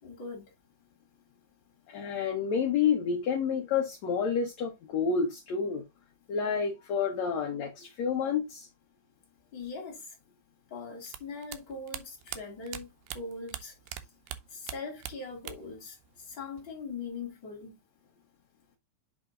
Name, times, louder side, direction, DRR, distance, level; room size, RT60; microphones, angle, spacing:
voice 1, 0.0-0.5 9.5-10.2 10.7-13.7 14.5-17.8, left 4 dB, 35° left, 3.0 m, -41 dB
voice 2, 1.9-5.8 6.3-8.7, left 6 dB, 60° left, 2.3 m, -29 dB
sound 1, 11.1-14.0 14.3-16.8, right 12 dB, 85° right, 2.3 m, -41 dB
7.8 x 3.6 x 3.8 m
omnidirectional pair, 3.9 m